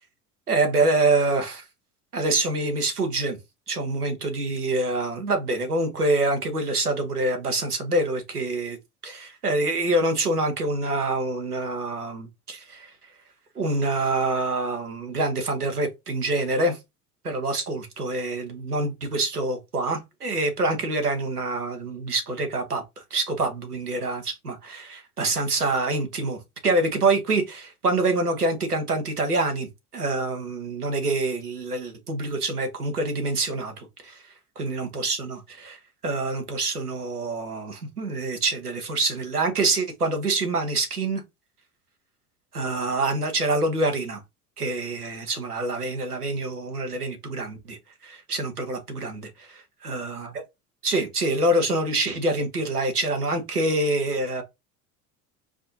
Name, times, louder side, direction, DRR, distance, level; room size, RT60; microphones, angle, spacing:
voice 1, 0.5-1.6 2.1-3.4 3.7-8.8 9.0-12.9 13.5-16.8 17.2-29.7 29.9-35.8 36.0-41.2 42.5-44.2 44.6-50.2 50.8-54.4, right 2 dB, 85° right, 1.0 m, -26 dB
4.8 x 2.7 x 2.7 m
figure-of-eight pair, 70°, 44 cm